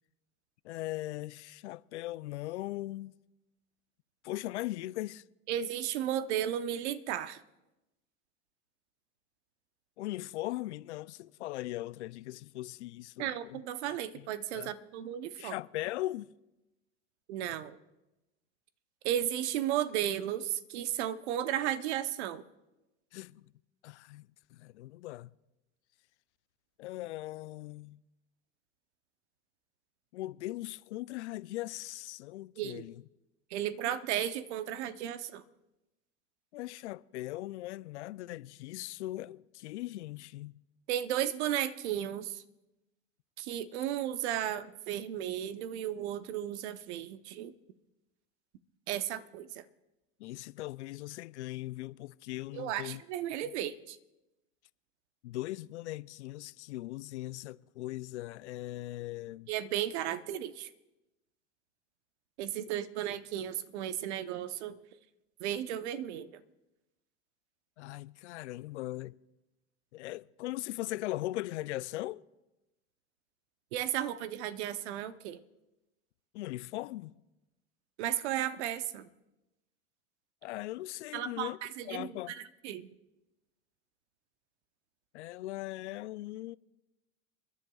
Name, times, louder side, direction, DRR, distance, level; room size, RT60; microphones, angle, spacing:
voice 1, 0.6-3.1 4.2-5.2 10.0-13.6 14.5-14.7 15.4-16.3 23.1-23.5 23.8-25.3 26.8-28.0 30.1-33.0 36.5-40.5 50.2-53.0 55.2-59.5 67.8-69.1 69.9-72.2 76.3-77.1 80.4-81.6 81.9-82.3 85.1-86.6, left 17 dB, 85° left, 0.5 m, -39 dB
voice 2, 5.5-7.4 13.2-15.6 17.3-17.8 19.0-22.4 32.6-32.9 33.5-35.4 40.9-42.4 43.4-47.5 48.9-49.6 52.5-54.0 59.5-60.7 62.4-64.8 65.4-66.4 73.7-75.4 78.0-79.1 81.1-82.9, right 11 dB, 75° right, 0.9 m, -34 dB
30.0 x 10.5 x 2.3 m
hypercardioid pair, 90°, 34 cm